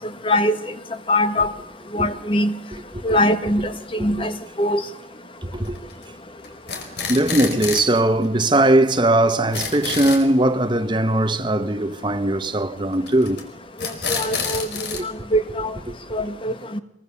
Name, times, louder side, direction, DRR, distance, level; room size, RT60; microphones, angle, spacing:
voice 1, 0.2-0.6 1.1-1.5 1.9-2.6 3.0-3.7 4.0-4.3 4.6-4.8 14.1-15.7 16.1-16.8, left 1 dB, 30° left, 1.5 m, -22 dB
voice 2, 5.4-5.8 7.1-13.4 14.9-15.1, right 1 dB, 25° right, 1.2 m, -19 dB
sound 1, 5.6-6.0 6.4-8.0 8.2-8.3 8.5-8.6 8.9-9.0 9.3-10.2 13.1-13.4 13.8-15.0, left 5 dB, 70° left, 4.7 m, -28 dB
24.5 x 23.0 x 7.2 m
head